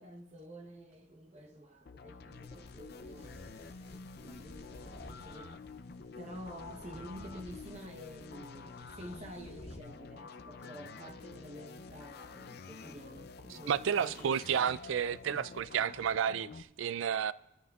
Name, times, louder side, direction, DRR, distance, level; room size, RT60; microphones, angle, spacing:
voice 1, 0.0-5.5 6.2-14.6, equal, 30° right, 0.8 m, -50 dB
sound 1, 1.9-16.6, left 4 dB, 50° left, 0.5 m, -49 dB
sound 2, 2.3-9.8, equal, 30° left, 1.8 m, -54 dB
voice 2, 13.5-17.3, right 8 dB, 70° right, 0.3 m, -31 dB
24.0 x 13.0 x 2.3 m
head